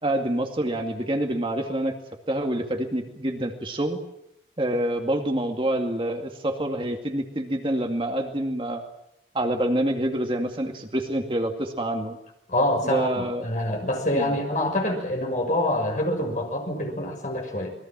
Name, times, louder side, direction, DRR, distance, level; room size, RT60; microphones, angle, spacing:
voice 1, 0.0-1.9 2.3-4.0 4.6-8.8 9.3-12.2 12.8-13.5 14.1-14.4, right 1 dB, 30° right, 4 dB, 2.3 m, -27 dB
voice 2, 12.5-17.7, left 1 dB, 45° left, 3 dB, 6.4 m, -26 dB
27.0 x 21.5 x 7.5 m, 0.81 s
head